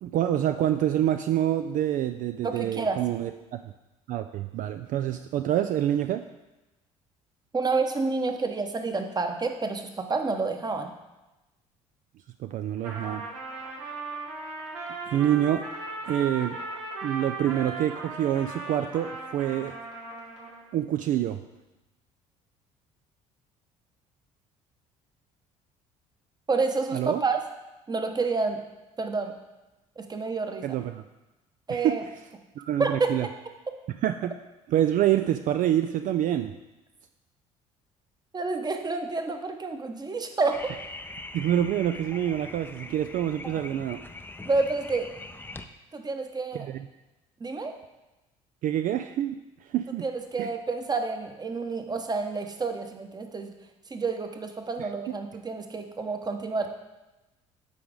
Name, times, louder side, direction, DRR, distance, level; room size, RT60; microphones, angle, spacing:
voice 1, 0.0-3.6 4.1-6.2 12.4-13.2 15.1-15.6 16.1-16.6 17.0-19.7 20.7-21.4 26.9-27.2 30.6-31.0 31.7-32.1 32.6-33.3 34.0-34.3 34.7-36.5 41.3-44.0 46.5-46.8 48.6-49.4 49.6-50.0 50.4-50.5 54.8-55.1, right 11 dB, 55° right, 8 dB, 0.4 m, -26 dB
voice 2, 2.4-3.0 7.5-10.9 26.5-27.4 27.9-28.6 29.0-29.3 30.0-30.8 31.7-32.0 32.8-33.1 38.3-40.7 44.4-45.1 45.9-46.7 47.4-47.8 50.0-53.5 53.9-56.7, right 4 dB, 25° right, 6 dB, 1.0 m, -29 dB
Trumpet, 12.8-20.7, right 3 dB, 80° right, 1.5 m, -37 dB
sound 1, 40.5-45.7, left 2 dB, 10° left, 0.5 m, -42 dB
8.3 x 4.9 x 3.8 m, 1.0 s
hypercardioid pair, 60°, 16 cm